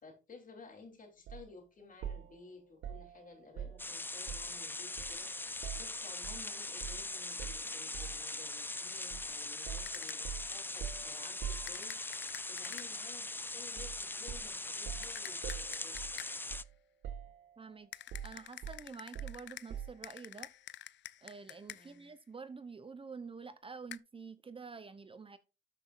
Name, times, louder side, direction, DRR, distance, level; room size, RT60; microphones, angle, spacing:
voice 1, 0.0-12.0 12.5-16.1 21.7-22.1, left 4 dB, 45° left, 3.6 m, -55 dB
sound 1, 1.3-1.5 2.0-4.6 5.0-6.4 6.8-7.0 7.4-8.3 9.1-9.3 9.7-12.2 13.8-14.0 14.3-16.8 17.0-17.7 18.1-20.1, right 9 dB, 75° right, 1.6 m, -45 dB
sound 2, 3.8-16.6, left 2 dB, 10° left, 0.5 m, -41 dB
sound 3, 9.9-10.4 11.7-13.1 15.0-16.6 17.9-22.1 23.9-24.0, left 13 dB, 65° left, 0.5 m, -49 dB
voice 2, 17.6-20.5 21.2-25.4, right 5 dB, 25° right, 0.8 m, -48 dB
13.0 x 5.7 x 2.6 m
cardioid pair, 90°, 20 cm